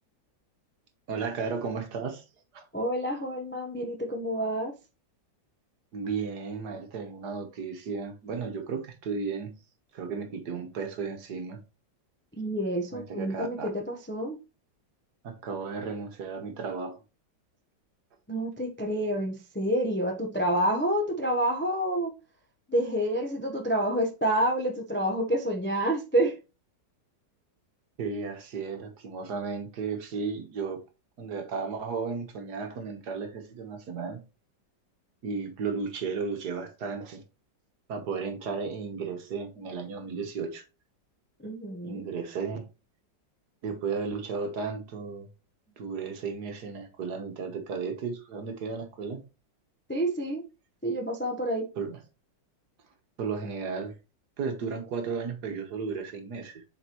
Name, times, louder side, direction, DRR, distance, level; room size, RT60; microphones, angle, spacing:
voice 1, 1.1-2.2 2.5-2.6 5.9-9.5 9.9-11.6 12.9-13.7 15.2-17.0 28.0-30.8 31.2-34.2 35.2-37.2 37.9-40.6 41.8-42.6 43.6-45.3 45.8-49.2 51.8-52.0 53.2-54.0 54.4-56.6, right 5 dB, 60° right, 1.6 m, -34 dB
voice 2, 2.7-4.7 12.4-14.4 18.3-22.1 22.7-26.4 41.4-42.1 49.9-50.4 50.8-51.7, right 1 dB, 15° left, 0.4 m, -28 dB
7.7 x 4.4 x 3.0 m
omnidirectional pair, 2.0 m